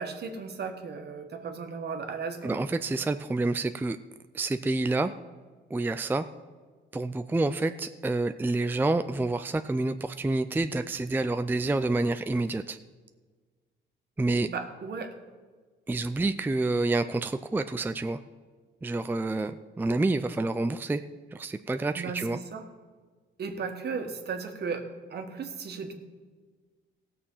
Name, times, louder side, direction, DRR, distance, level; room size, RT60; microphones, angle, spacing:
voice 1, 0.0-2.6 14.5-15.2 21.9-22.7 23.4-25.9, right 5 dB, 55° right, 5 dB, 1.5 m, -35 dB
voice 2, 2.4-4.0 4.3-5.1 5.7-6.3 6.9-12.8 14.2-14.5 15.9-18.2 18.8-21.0 21.3-22.4, right 2 dB, 10° right, 9 dB, 0.4 m, -28 dB
16.5 x 6.8 x 5.6 m, 1.5 s
cardioid pair, 90°, 20 cm